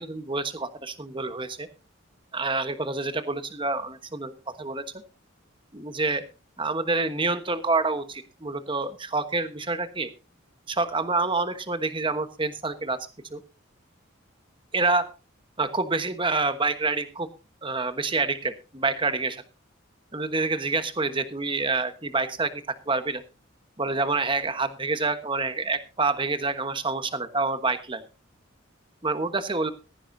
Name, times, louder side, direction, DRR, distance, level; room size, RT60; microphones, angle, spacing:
voice 1, 0.0-1.7 2.3-4.8 5.7-6.2 6.6-10.1 10.7-13.4 14.7-15.1 15.6-17.3 17.6-19.4 20.1-23.2 23.8-28.0 29.0-29.7, right 3 dB, 25° right, 10 dB, 1.2 m, -27 dB
16.0 x 15.0 x 2.7 m, 0.32 s
head